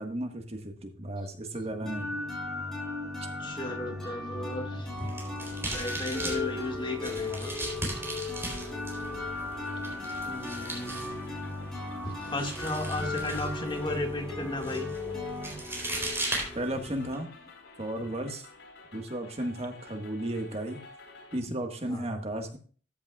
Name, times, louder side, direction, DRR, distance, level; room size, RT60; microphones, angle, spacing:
voice 1, 0.0-2.1 16.5-17.3 17.8-18.5 18.9-20.8 21.3-22.6, right 1 dB, 35° right, 5 dB, 1.5 m, -34 dB
sound 1, 1.9-17.5, left 2 dB, 5° left, 5.0 m, -37 dB
voice 2, 3.4-5.1 5.7-7.9 10.2-11.2 12.0-14.9 21.8-22.1, left 1 dB, 25° left, 4 dB, 1.9 m, -35 dB
sound 2, 4.8-17.2, right 1 dB, 15° right, 3.7 m, -39 dB
sound 3, 8.6-21.4, left 3 dB, 80° left, 4.5 m, -51 dB
14.0 x 8.7 x 2.4 m, 0.40 s
head